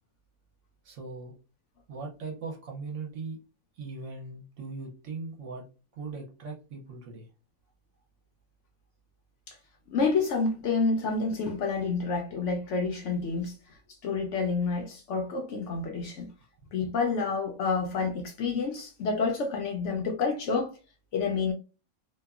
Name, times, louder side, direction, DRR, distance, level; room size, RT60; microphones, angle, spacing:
voice 1, 0.8-1.3 1.9-3.4 3.7-5.6 5.9-7.3, right 4 dB, 65° right, 1.0 m, -39 dB
voice 2, 9.9-13.5 14.0-16.3 16.7-20.7 21.1-21.5, left 4 dB, 65° left, 0.8 m, -28 dB
2.8 x 2.1 x 2.3 m
omnidirectional pair, 1.5 m